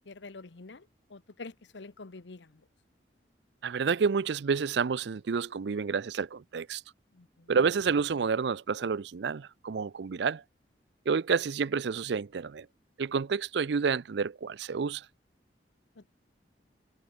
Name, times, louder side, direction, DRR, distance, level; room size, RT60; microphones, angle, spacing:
voice 1, 0.0-2.7 7.1-7.5 15.9-16.1, left 3 dB, 80° left, 0.9 m, -47 dB
voice 2, 3.6-6.8 7.5-10.4 11.1-12.7 13.0-15.1, right 5 dB, 70° right, 0.5 m, -29 dB
head